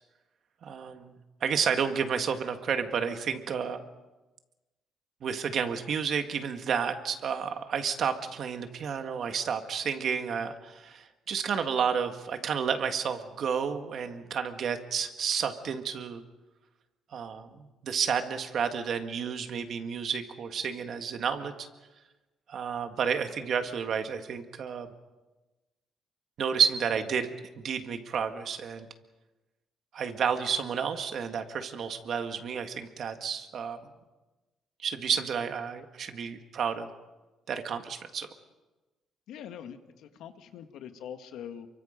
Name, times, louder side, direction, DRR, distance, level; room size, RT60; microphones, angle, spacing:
voice 1, 0.6-3.8 5.2-16.2 17.1-21.7 22.5-24.9 26.4-28.9 29.9-33.8 34.8-36.9 37.5-38.3, right 7 dB, 45° right, 6 dB, 1.8 m, -31 dB
voice 2, 39.3-41.7, left 9 dB, 70° left, 7 dB, 1.8 m, -43 dB
29.0 x 24.0 x 5.3 m, 1.1 s
cardioid pair, 175°, 0 cm